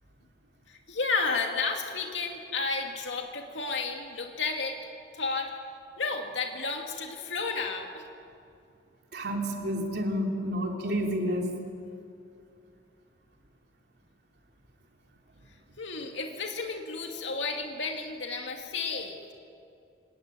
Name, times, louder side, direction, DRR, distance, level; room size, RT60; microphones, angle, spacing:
voice 1, 0.7-4.8 5.1-5.5 6.0-8.0 15.8-19.3, left 4 dB, 80° left, 2 dB, 2.3 m, -32 dB
voice 2, 9.1-11.5, equal, 60° right, 1 dB, 3.4 m, -30 dB
27.5 x 19.0 x 9.0 m, 2.5 s
head